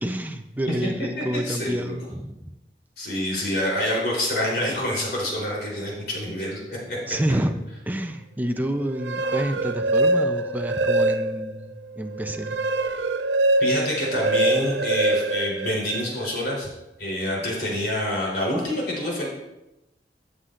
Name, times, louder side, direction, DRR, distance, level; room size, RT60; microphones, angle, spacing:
voice 1, 0.0-2.5 7.1-7.5 7.9-12.6, right 1 dB, 10° right, 6 dB, 0.6 m, -28 dB
voice 2, 1.2-2.0 3.0-7.1 13.6-16.7 17.0-19.3, left 1 dB, 60° left, -3 dB, 3.8 m, -27 dB
sound 1, 8.9-11.6 12.0-16.3, right 2 dB, 85° right, 0.6 m, -24 dB
13.5 x 8.1 x 2.6 m, 0.94 s
head